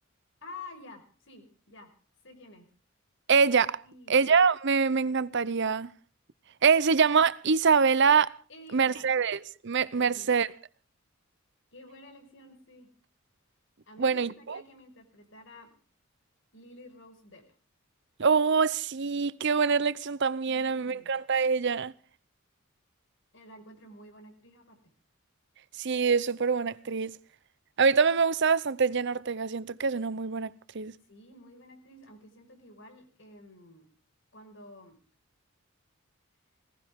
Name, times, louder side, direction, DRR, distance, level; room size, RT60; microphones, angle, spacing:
voice 1, 0.4-1.9 2.2-2.7 3.8-4.2 8.5-9.1 10.0-10.4 11.7-12.9 13.9-15.7 16.5-17.4 20.5-21.1 23.3-24.8 31.1-33.9 34.3-35.0, left 2 dB, 65° left, 5.3 m, -50 dB
voice 2, 3.3-3.8 4.1-5.9 6.6-8.3 8.7-10.5 14.0-14.6 18.2-21.9 25.8-27.2 27.8-30.5 30.7-30.9, right 5 dB, 60° right, 0.7 m, -24 dB
21.0 x 18.5 x 3.6 m
head